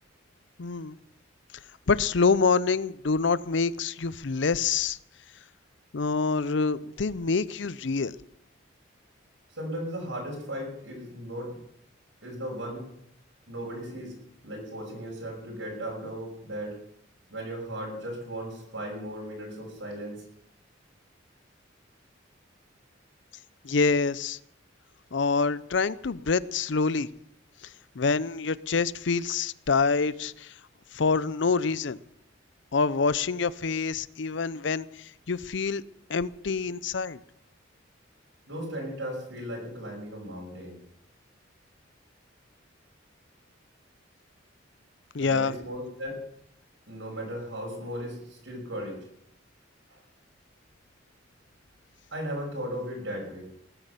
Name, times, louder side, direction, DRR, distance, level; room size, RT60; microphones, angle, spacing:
voice 1, 0.6-1.0 1.9-5.0 5.9-8.2 23.6-24.4 25.1-27.1 27.6-27.7 27.9-30.5 30.9-32.0 32.7-35.8 36.1-37.2 45.1-45.5, left 4 dB, 65° left, 0.6 m, -26 dB
voice 2, 9.5-11.6 12.2-12.8 13.5-14.1 14.4-16.7 17.3-20.2 38.5-40.8 45.2-46.2 46.9-49.0 49.9-50.0 52.1-53.5, equal, 70° right, 6.0 m, -36 dB
20.0 x 9.8 x 6.8 m
head